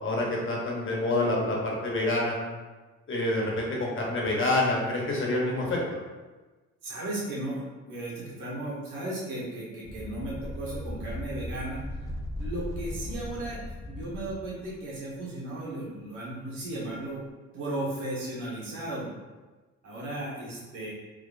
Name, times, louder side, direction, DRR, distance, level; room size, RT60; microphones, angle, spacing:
voice 1, 0.0-2.4 3.1-5.8, left 2 dB, 40° left, -2 dB, 1.0 m, -27 dB
voice 2, 6.8-11.8 12.4-17.2 17.5-19.1 19.8-20.9, right 1 dB, 90° right, -7 dB, 1.5 m, -35 dB
sound 1, 9.9-14.8, left 1 dB, 15° left, 0.3 m, -37 dB
3.9 x 2.9 x 2.6 m, 1.3 s
cardioid pair, 90°, 30 cm